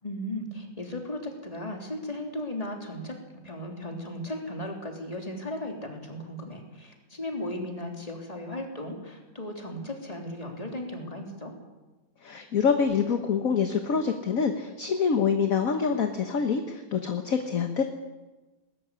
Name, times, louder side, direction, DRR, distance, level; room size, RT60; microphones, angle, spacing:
voice 1, 0.0-11.5, left 1 dB, 20° left, 1 dB, 3.4 m, -36 dB
voice 2, 12.2-17.8, left 6 dB, 50° left, 6 dB, 1.5 m, -26 dB
20.0 x 14.0 x 9.8 m, 1.1 s
omnidirectional pair, 2.1 m